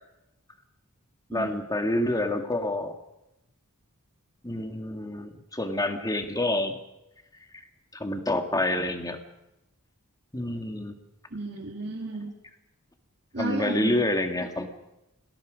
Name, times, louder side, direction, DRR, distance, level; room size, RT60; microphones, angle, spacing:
voice 1, 1.3-2.9 4.4-6.8 7.9-9.2 10.3-11.0 13.4-14.7, left 1 dB, 15° left, 6 dB, 2.0 m, -28 dB
voice 2, 11.3-12.3 13.3-14.0, right 2 dB, 50° right, -1 dB, 2.3 m, -33 dB
28.5 x 19.5 x 5.2 m, 0.89 s
head